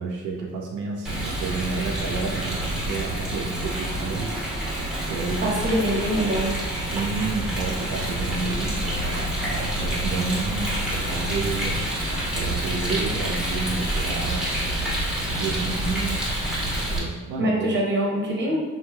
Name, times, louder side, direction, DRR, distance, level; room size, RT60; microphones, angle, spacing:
voice 1, 0.0-4.4 5.1-5.9 6.9-11.8 12.3-14.5 15.3-16.3 16.7-17.8, right 4 dB, 80° right, -1 dB, 0.5 m, -30 dB
Rain, 1.0-17.0, right 1 dB, ahead, 0.8 m, -27 dB
voice 2, 5.4-6.6 17.4-18.6, right 1 dB, 35° right, -2 dB, 0.7 m, -24 dB
3.1 x 2.6 x 2.2 m, 1.2 s
cardioid pair, 90°, 30 cm